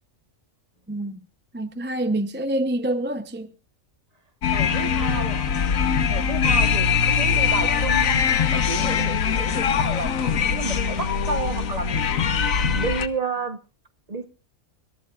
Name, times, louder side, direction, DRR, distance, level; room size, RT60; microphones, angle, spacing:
voice 1, 0.9-1.2 1.5-3.5, right 1 dB, 10° right, 0.7 m, -26 dB
sound 1, 4.4-13.1, left 6 dB, 70° left, 1.4 m, -22 dB
voice 2, 4.5-5.5 6.0-8.2 8.5-13.6 14.1-14.3, right 3 dB, 30° right, 1.1 m, -31 dB
26.0 x 14.0 x 2.5 m
omnidirectional pair, 1.4 m